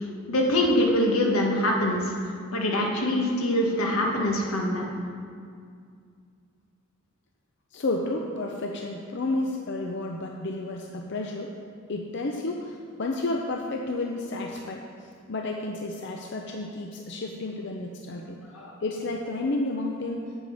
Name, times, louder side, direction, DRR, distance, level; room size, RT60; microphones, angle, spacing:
voice 1, 0.3-2.1 2.5-4.9 18.5-18.7, left 1 dB, 90° left, 0 dB, 1.5 m, -24 dB
voice 2, 7.7-11.5 11.9-18.4 18.8-20.4, left 2 dB, 55° left, 1 dB, 0.6 m, -31 dB
8.0 x 7.6 x 5.5 m, 2.2 s
head